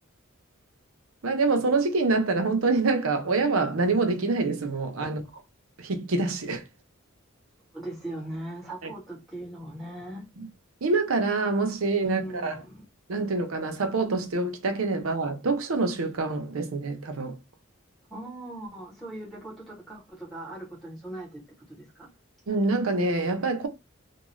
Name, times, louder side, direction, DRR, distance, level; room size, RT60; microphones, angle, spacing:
voice 1, 1.2-5.2 5.8-6.6 8.8-8.9 10.4-10.5 10.8-12.6 13.1-17.4 22.5-23.7, right 3 dB, 85° right, 0.6 m, -26 dB
voice 2, 7.7-10.3 12.0-12.8 18.1-22.1, right 1 dB, ahead, 1.0 m, -39 dB
2.3 x 2.2 x 3.0 m
head